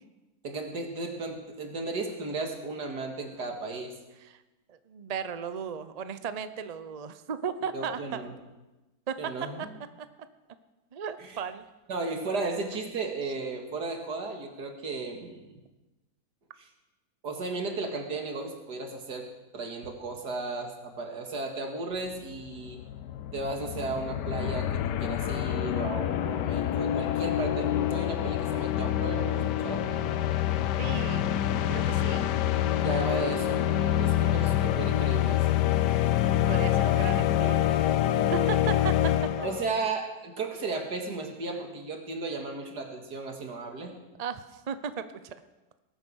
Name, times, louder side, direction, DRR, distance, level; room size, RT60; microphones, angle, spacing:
voice 1, 0.4-3.9 7.7-8.3 9.2-9.6 11.2-11.3 11.9-15.6 17.2-19.3 19.5-22.8 23.3-29.9 32.8-35.5 39.4-44.0, right 3 dB, 75° right, 3 dB, 2.5 m, -35 dB
voice 2, 4.7-8.2 9.1-9.2 9.6-9.7 10.0-10.1 10.9-11.6 30.8-31.4 31.7-32.3 36.5-37.7 38.2-38.9 39.4-39.5 41.5-41.6 44.2-45.4, right 7 dB, 50° right, 11 dB, 0.4 m, -35 dB
sound 1, 22.1-22.2 22.3-39.8, left 12 dB, 90° left, 1.3 m, -26 dB
19.5 x 9.0 x 6.4 m, 1.1 s
omnidirectional pair, 1.8 m